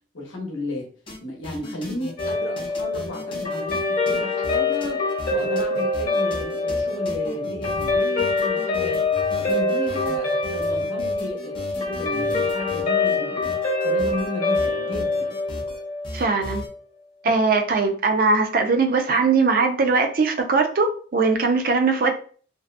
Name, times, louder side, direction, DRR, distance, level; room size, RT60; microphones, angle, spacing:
voice 1, 0.1-0.9 1.2-13.5 13.8-15.4, left 2 dB, 80° left, 0 dB, 0.8 m, -34 dB
sound 1, 1.1-1.2 1.4-13.2 13.4-14.3 14.5-15.8 16.0-16.7, left 1 dB, 25° left, 0.5 m, -37 dB
Guitar, 2.2-16.8, left 3 dB, 40° left, 1.0 m, -25 dB
voice 2, 16.1-16.6 17.2-22.1, right 4 dB, 45° right, 4 dB, 0.4 m, -20 dB
2.6 x 2.2 x 2.4 m, 0.43 s
head